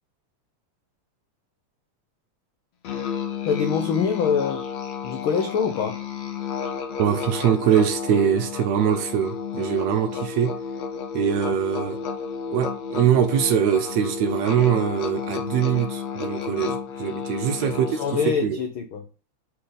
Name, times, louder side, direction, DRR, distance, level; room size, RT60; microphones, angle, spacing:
Musical instrument, 2.8-18.4, left 6 dB, 65° left, 2.2 m, -31 dB
voice 1, 3.5-4.7 5.0-6.0 18.0-19.0, left 6 dB, 80° left, 1.1 m, -24 dB
voice 2, 7.0-10.5 11.1-12.0 12.5-18.0 18.4-18.6, right 9 dB, 70° right, 2.1 m, -22 dB
8.5 x 5.1 x 4.0 m
omnidirectional pair, 3.5 m